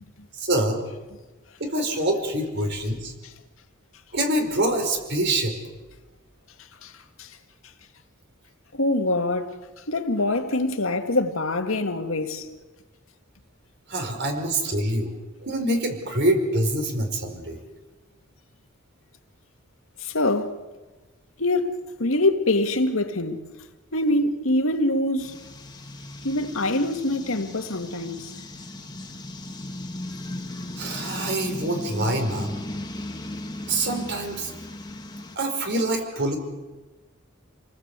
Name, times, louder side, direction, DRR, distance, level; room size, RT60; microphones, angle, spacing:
voice 1, 0.4-0.8 1.6-3.1 4.1-5.6 13.9-15.1 15.4-17.6 30.8-32.6 33.7-34.5 35.3-36.4, right 1 dB, 55° right, 4.9 m, -25 dB
voice 2, 8.7-9.6 9.9-12.5 20.0-20.6 21.4-23.5 23.9-25.4 26.2-28.3, left 2 dB, 80° left, 2.1 m, -24 dB
sound 1, 25.2-35.4, left 1 dB, 20° left, 1.7 m, -37 dB
29.5 x 19.5 x 8.3 m
head